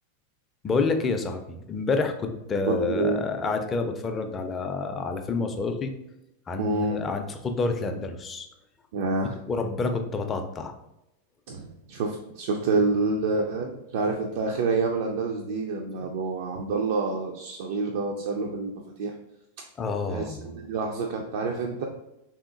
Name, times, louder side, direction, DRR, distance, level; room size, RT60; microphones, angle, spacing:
voice 1, 0.6-5.9 6.5-8.5 9.5-10.7 19.8-20.6, left 4 dB, 20° left, 6 dB, 0.4 m, -28 dB
voice 2, 2.7-3.2 6.6-7.0 8.9-9.4 11.5-19.1 19.6-19.7 20.1-21.8, right 3 dB, 55° right, 2 dB, 0.3 m, -28 dB
3.5 x 2.8 x 2.4 m, 0.90 s
figure-of-eight pair, 90°, 0 cm